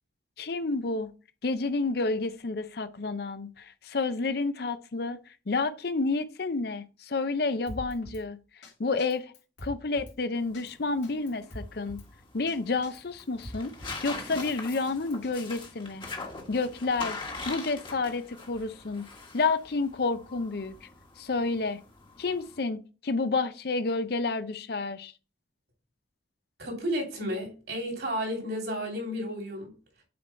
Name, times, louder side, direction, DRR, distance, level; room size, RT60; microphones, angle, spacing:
voice 1, 0.4-1.1 1.4-9.3 9.6-12.0 12.3-13.7 14.0-16.1 16.5-17.2 17.5-19.0 19.3-20.9 21.2-21.8 22.2-25.1, left 3 dB, 55° left, 0.6 m, -30 dB
Drum kit, 7.7-8.2 8.6-8.7 9.0-10.2 10.5-10.7 11.0-12.1 12.5-12.6 12.8-14.0 14.4-15.3, equal, 85° left, 2.5 m, -43 dB
sound 1, 10.3-22.6, left 3 dB, 25° left, 1.3 m, -42 dB
voice 2, 26.6-29.7, equal, 65° right, 3.0 m, -32 dB
7.1 x 4.6 x 4.2 m
head